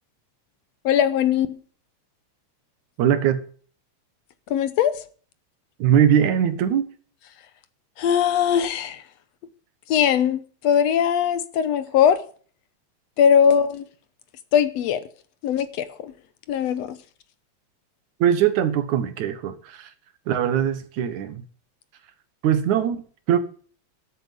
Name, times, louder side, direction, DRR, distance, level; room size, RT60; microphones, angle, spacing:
voice 1, 0.9-1.6 4.5-5.0 8.0-9.0 9.9-12.2 13.2-13.8 14.5-15.0 15.4-16.1 16.5-17.0, left 8 dB, 70° left, 2.0 m, -20 dB
voice 2, 3.0-3.4 5.8-6.9 18.2-19.9 20.3-21.4 22.4-23.4, right 9 dB, 85° right, 2.8 m, -21 dB
13.5 x 8.7 x 7.5 m
omnidirectional pair, 3.3 m